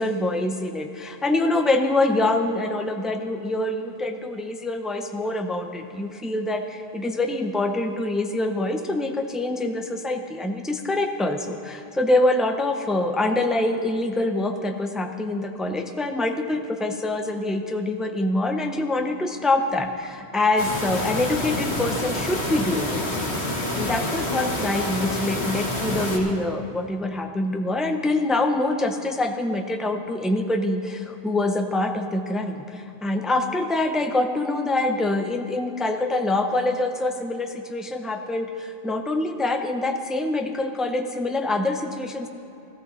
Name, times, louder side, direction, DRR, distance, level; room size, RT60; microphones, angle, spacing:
voice 1, 0.0-23.4 23.8-42.3, left 2 dB, ahead, 5 dB, 0.4 m, -25 dB
sound 1, 20.6-26.2, left 1 dB, 75° left, 2.0 m, -27 dB
15.0 x 13.5 x 4.1 m, 2.9 s
omnidirectional pair, 1.1 m